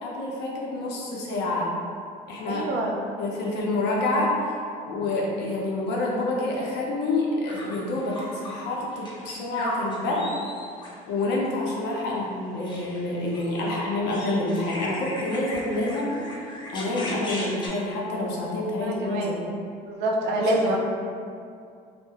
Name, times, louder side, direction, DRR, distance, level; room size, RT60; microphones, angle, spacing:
voice 1, 0.0-1.7 2.3-2.7 3.2-4.5 4.8-10.3 11.1-16.2 16.7-19.4 20.4-20.8, left 2 dB, 85° left, -3 dB, 0.5 m, -27 dB
voice 2, 2.5-2.9 13.6-13.8 18.8-19.3 19.9-20.8, right 1 dB, 80° right, 0 dB, 0.4 m, -26 dB
sound 1, 7.5-8.6 8.9-10.9 12.6-17.7, left 1 dB, 25° left, 0.5 m, -38 dB
2.3 x 2.1 x 2.8 m, 2.4 s
cardioid pair, 110°, 17 cm